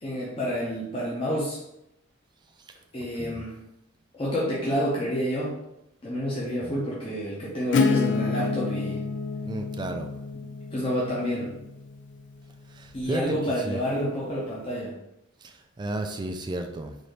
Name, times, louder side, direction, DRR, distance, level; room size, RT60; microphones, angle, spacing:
voice 1, 0.0-1.6 2.9-3.6 4.1-5.6 6.0-9.0 10.7-11.5 12.9-14.9, equal, 25° left, -6 dB, 0.8 m, -29 dB
voice 2, 2.6-3.5 6.6-6.7 9.4-10.1 12.7-13.8 15.4-17.0, right 2 dB, 20° right, 6 dB, 0.3 m, -34 dB
Acoustic guitar / Strum, 7.7-13.2, left 4 dB, 60° left, 0.4 m, -29 dB
4.0 x 2.7 x 3.2 m, 0.83 s
head